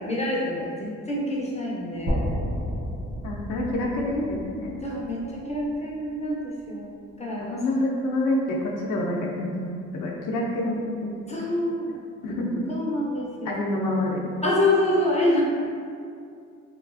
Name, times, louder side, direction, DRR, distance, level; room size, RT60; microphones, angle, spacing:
voice 1, 0.0-2.3 4.8-7.6 11.3-11.9 12.7-13.6 14.4-15.4, left 1 dB, 20° left, -4 dB, 0.4 m, -26 dB
sound 1, 2.1-6.1, equal, 40° right, 0.6 m, -32 dB
voice 2, 3.2-4.8 7.4-11.1 12.2-12.7 13.5-14.3, left 1 dB, 85° left, -2 dB, 0.5 m, -27 dB
3.0 x 2.4 x 2.3 m, 2.3 s
cardioid pair, 90°, 30 cm